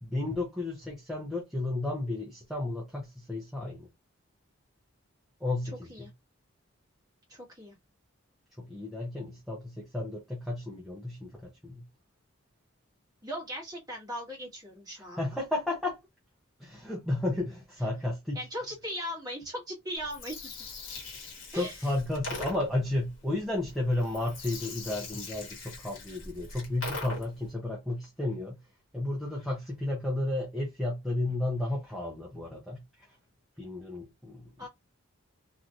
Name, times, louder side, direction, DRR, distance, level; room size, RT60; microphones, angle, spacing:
voice 1, 0.0-3.9 5.4-6.1 8.6-11.8 15.0-16.0 16.6-18.7 20.8-20.9 21.5-28.6 28.9-32.8 33.6-34.7, left 2 dB, ahead, 0.6 m, -33 dB
voice 2, 7.3-7.8 13.2-15.2 18.3-20.3 21.5-21.7 34.6-34.7, equal, 15° right, 1.4 m, -38 dB
Gurgling, 20.0-27.5, left 3 dB, 70° left, 1.3 m, -42 dB
3.1 x 2.7 x 2.4 m
head